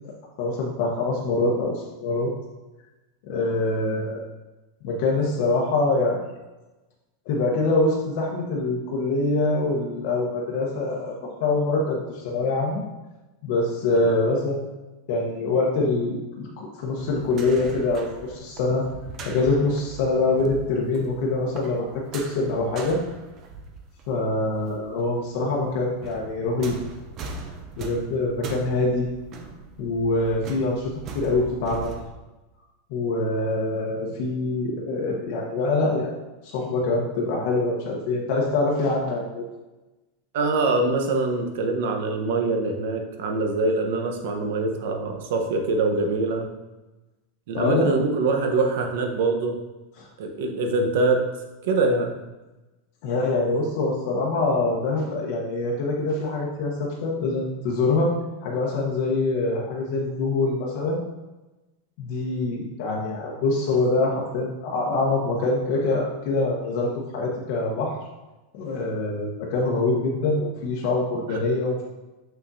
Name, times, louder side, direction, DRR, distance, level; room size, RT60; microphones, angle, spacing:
voice 1, 0.4-2.3 3.3-4.2 4.8-6.2 7.3-12.8 13.4-14.6 15.1-18.9 19.2-23.0 24.1-26.8 27.8-29.1 29.8-31.9 32.9-36.1 36.4-39.4 47.5-47.9 50.0-50.1 53.0-58.1 58.4-61.0 62.0-68.0 68.5-71.8, left 2 dB, 50° left, -3 dB, 1.0 m, -24 dB
sound 1, 17.0-24.8 25.1-32.1, right 3 dB, 25° right, 0.5 m, -41 dB
voice 2, 40.3-46.5 47.5-49.6 50.2-51.2 51.6-52.1 71.3-71.4, right 3 dB, 60° right, 4 dB, 1.0 m, -24 dB
6.9 x 6.1 x 2.7 m, 1.1 s
supercardioid pair, 175°, 0 cm